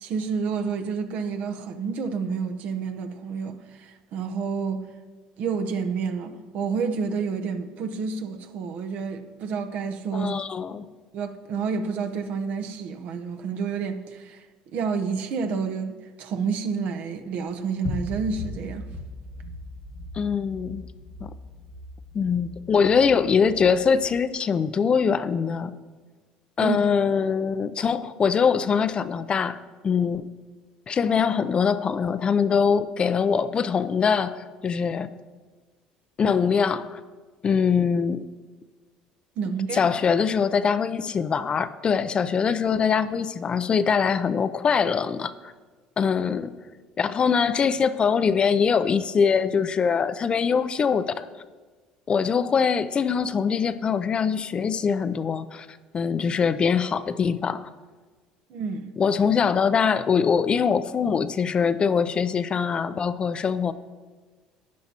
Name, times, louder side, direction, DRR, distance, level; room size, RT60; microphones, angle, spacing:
voice 1, 0.0-4.9 5.4-10.3 10.7-10.8 11.1-14.5 14.7-18.8 26.6-26.8 39.4-39.8 58.5-58.9, right 5 dB, 65° right, 0.8 m, -29 dB
voice 2, 10.1-10.8 20.1-20.9 21.2-21.3 22.1-25.8 26.6-29.6 29.8-30.3 30.9-35.1 36.2-37.0 37.4-38.3 39.7-45.5 46.0-46.6 47.0-51.3 52.1-55.7 55.9-57.7 59.0-63.7, left 6 dB, 35° left, 0.5 m, -23 dB
sound 1, 17.8-24.2, left 1 dB, 70° left, 1.9 m, -38 dB
12.5 x 9.3 x 2.9 m
supercardioid pair, 85°, 3 cm